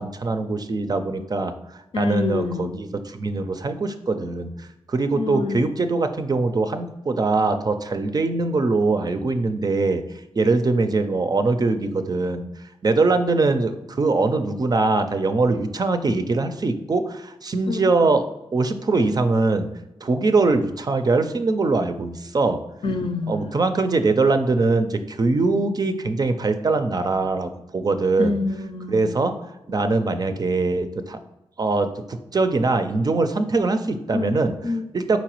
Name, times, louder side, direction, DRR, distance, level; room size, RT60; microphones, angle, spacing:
voice 1, 0.0-1.5 2.0-4.5 4.9-10.0 10.4-12.5 12.8-18.3 18.5-19.7 20.0-22.6 23.3-28.4 28.9-29.3 29.7-31.2 31.6-34.5 34.9-35.2, right 3 dB, 40° right, 8 dB, 0.4 m, -22 dB
voice 2, 1.9-2.8 5.1-5.7 17.7-17.9 22.8-23.6 28.2-29.1 34.1-34.9, left 3 dB, 55° left, 7 dB, 0.5 m, -27 dB
4.3 x 3.9 x 3.0 m, 0.92 s
cardioid pair, 50°, 11 cm